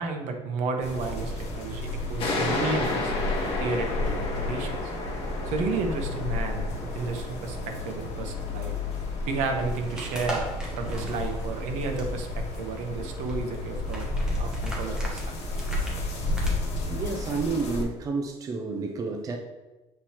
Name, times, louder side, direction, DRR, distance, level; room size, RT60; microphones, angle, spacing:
voice 1, 0.0-3.1 3.6-4.9 5.5-6.7 6.9-8.8 9.3-10.5 10.8-14.1 14.4-15.4 16.3-16.4, right 4 dB, 80° right, 4 dB, 0.9 m, -32 dB
sound 1, 0.8-17.8, left 2 dB, 65° left, 1.4 m, -32 dB
sound 2, 2.2-9.4, left 2 dB, 50° left, 1.4 m, -32 dB
sound 3, 9.6-16.6, right 1 dB, 5° right, 1.1 m, -40 dB
voice 2, 16.9-19.4, right 4 dB, 30° right, 3 dB, 0.5 m, -30 dB
7.7 x 4.2 x 2.9 m, 1.1 s
cardioid pair, 150°, 12 cm